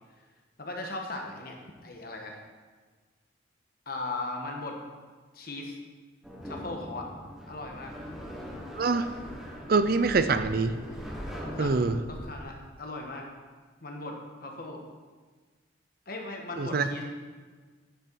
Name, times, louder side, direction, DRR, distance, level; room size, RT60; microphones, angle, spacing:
voice 1, 0.6-1.6 1.8-2.4 3.9-4.8 5.3-5.8 6.4-7.1 7.5-7.9 11.4-13.3 13.8-14.8 16.1-17.0, left 2 dB, 50° left, 2 dB, 1.3 m, -38 dB
sound 1, 6.2-12.4, equal, ahead, 1.2 m, -41 dB
voice 2, 8.8-9.1 9.7-10.7 11.6-12.0 16.6-16.9, right 4 dB, 50° right, 10 dB, 0.5 m, -24 dB
9.9 x 6.3 x 4.7 m, 1.4 s
head